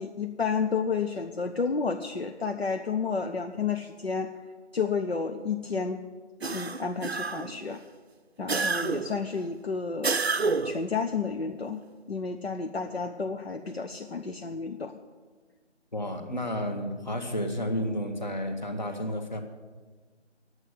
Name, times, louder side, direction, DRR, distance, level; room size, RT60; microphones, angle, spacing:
voice 1, 0.0-4.3 4.7-6.0 6.4-7.8 8.4-10.3 10.6-11.8 12.1-15.0, left 5 dB, 60° left, 6 dB, 0.8 m, -31 dB
sound 1, 6.4-7.6 8.5-9.2 10.0-10.9, right 4 dB, 60° right, 0.7 m, -29 dB
voice 2, 15.9-19.4, equal, 40° left, 5 dB, 1.3 m, -31 dB
10.5 x 7.9 x 9.8 m, 1.4 s
figure-of-eight pair, 175°, 36 cm